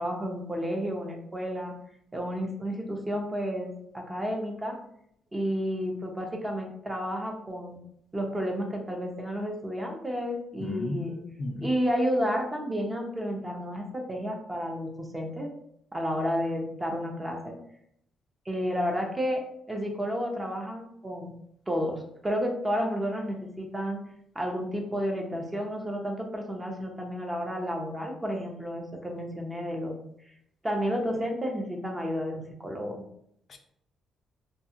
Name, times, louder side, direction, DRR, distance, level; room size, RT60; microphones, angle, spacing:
voice 1, 0.0-1.7 2.1-4.8 5.3-7.8 8.1-11.2 11.6-15.5 15.9-17.5 18.5-19.4 19.7-21.3 21.7-24.0 24.3-29.9 30.6-33.0, equal, 20° right, 1 dB, 0.6 m, -31 dB
voice 2, 10.6-11.7 33.5-33.6, left 2 dB, 50° left, 5 dB, 0.3 m, -34 dB
2.7 x 2.2 x 2.8 m, 0.73 s
cardioid pair, 90°, 0 cm